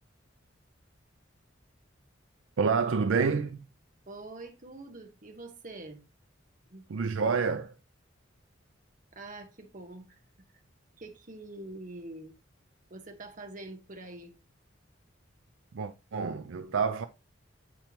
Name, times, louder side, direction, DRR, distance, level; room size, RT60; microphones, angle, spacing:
voice 1, 2.6-3.6 6.9-7.7 15.7-17.1, right 5 dB, 80° right, 0.5 m, -28 dB
voice 2, 4.1-6.0 6.7-6.8 9.1-10.2 11.0-12.3 12.9-14.4, right 2 dB, 40° right, 1.1 m, -45 dB
8.6 x 4.4 x 2.9 m
head